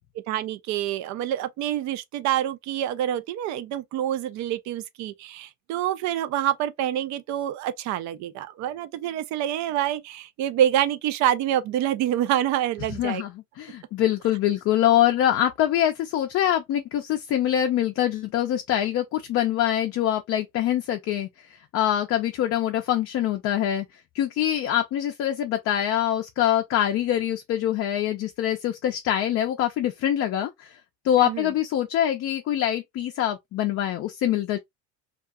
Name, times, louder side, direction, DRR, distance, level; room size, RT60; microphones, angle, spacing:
voice 1, 0.3-13.2 31.2-31.5, right 11 dB, 60° right, 0.5 m, -27 dB
voice 2, 13.0-21.3 21.7-23.9 24.1-30.8 31.0-34.6, left 11 dB, 45° left, 0.5 m, -24 dB
2.4 x 2.3 x 2.5 m
supercardioid pair, 110°, 33 cm